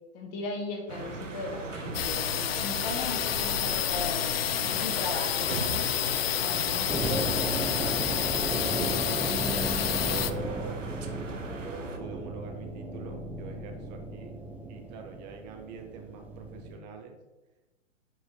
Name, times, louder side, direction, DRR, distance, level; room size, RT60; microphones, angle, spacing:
voice 1, 0.1-4.2 4.6-5.9 6.3-8.0, left 3 dB, 35° left, 1 dB, 1.6 m, -37 dB
sound 1, 0.9-12.0, right 3 dB, 85° right, 1.1 m, -39 dB
sound 2, 1.9-10.3, left 11 dB, 55° left, 0.5 m, -29 dB
sound 3, 6.9-16.8, right 2 dB, 5° right, 0.6 m, -35 dB
voice 2, 8.6-14.4 14.7-17.2, right 4 dB, 35° right, 4 dB, 1.1 m, -44 dB
5.7 x 5.5 x 3.7 m, 1.1 s
figure-of-eight pair, 120°, 37 cm